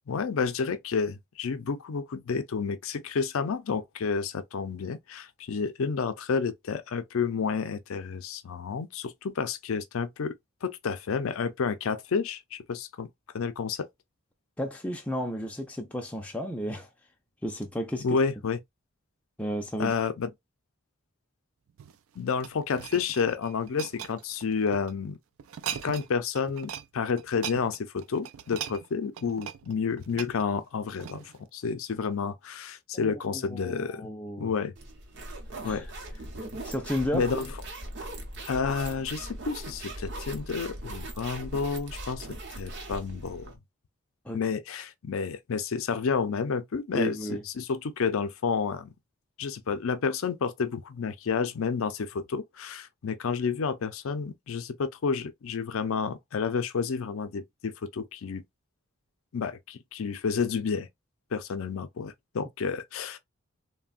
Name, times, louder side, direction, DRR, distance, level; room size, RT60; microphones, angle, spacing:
voice 1, 0.1-10.3 10.6-13.1 13.3-13.9 18.0-18.6 19.8-20.3 22.2-25.2 25.7-34.1 34.4-34.7 35.6-35.9 37.1-37.5 38.5-42.3 42.6-43.5 44.3-48.9 49.4-58.4 59.3-60.9 61.3-63.2, left 5 dB, 70° left, 0.4 m, -30 dB
voice 2, 14.6-16.9 17.4-18.0 19.4-19.9 32.9-34.5 35.6-35.9 36.6-37.3 44.2-44.4 46.9-47.4, equal, 5° left, 0.4 m, -33 dB
sound 1, 21.7-24.9 25.4-26.1 26.3-26.9 27.2-31.4 32.0-32.2, right 9 dB, 75° right, 0.3 m, -40 dB
sound 2, 34.8-43.6, right 1 dB, 55° right, 0.8 m, -39 dB
3.3 x 2.1 x 2.3 m
head